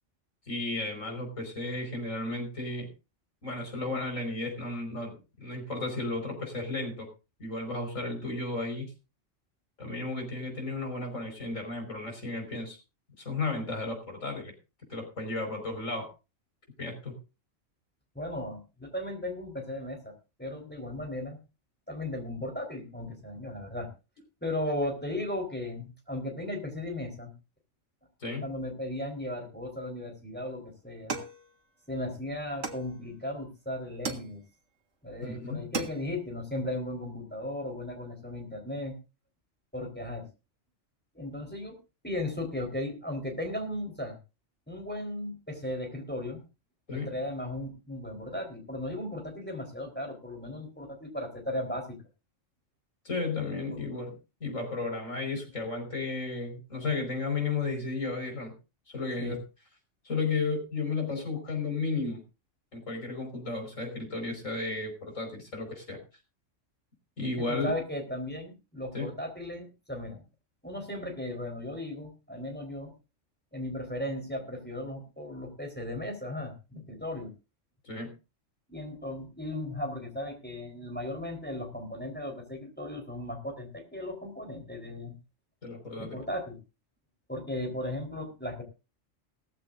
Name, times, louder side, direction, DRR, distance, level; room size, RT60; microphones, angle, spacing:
voice 1, 0.5-2.9 3.4-5.2 5.4-7.1 7.4-8.9 9.8-12.8 13.2-14.5 14.9-16.1 16.8-17.1 28.2-28.4 35.2-35.6 46.9-47.1 53.0-54.1 54.4-58.5 58.9-59.4 60.0-62.2 62.7-66.0 67.2-67.7 68.9-69.1 77.8-78.2 85.6-86.2, left 3 dB, 85° left, 3 dB, 5.6 m, -33 dB
voice 2, 18.1-20.1 20.4-21.4 21.9-23.9 24.4-27.3 28.4-31.2 31.9-34.4 35.0-38.9 39.7-40.3 41.1-41.8 42.0-44.2 44.7-46.4 46.9-52.0 53.7-53.8 59.2-59.4 67.4-70.2 70.6-72.9 73.5-77.3 78.7-85.1 86.0-86.6 87.3-88.6, left 1 dB, 10° left, 2 dB, 4.0 m, -36 dB
sound 1, 31.1-32.0 32.6-33.4 34.0-34.7 35.2-35.3 35.6-36.3, right 4 dB, 75° right, 2.0 m, -38 dB
17.5 x 15.0 x 2.6 m, 0.30 s
omnidirectional pair, 1.3 m